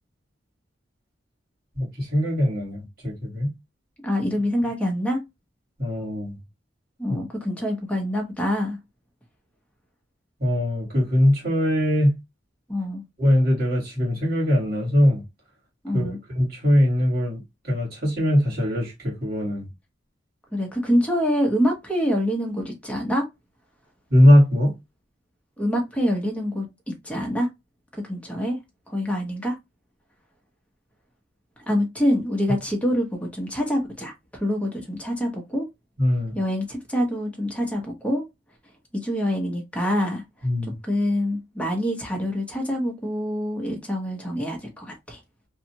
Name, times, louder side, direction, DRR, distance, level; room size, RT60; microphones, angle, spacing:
voice 1, 1.7-3.5 5.8-6.3 7.1-7.2 10.4-12.2 13.2-15.2 15.9-19.6 24.1-24.7 36.0-36.4 40.4-40.8, equal, 55° right, 1.6 m, -21 dB
voice 2, 4.0-5.2 7.0-8.8 12.7-13.0 15.8-16.2 20.5-23.2 25.6-26.7 27.0-27.5 28.0-28.6 28.9-29.5 31.7-35.6 36.3-38.2 38.9-40.2 40.9-45.2, equal, 5° left, 0.9 m, -25 dB
2.7 x 2.4 x 2.8 m
head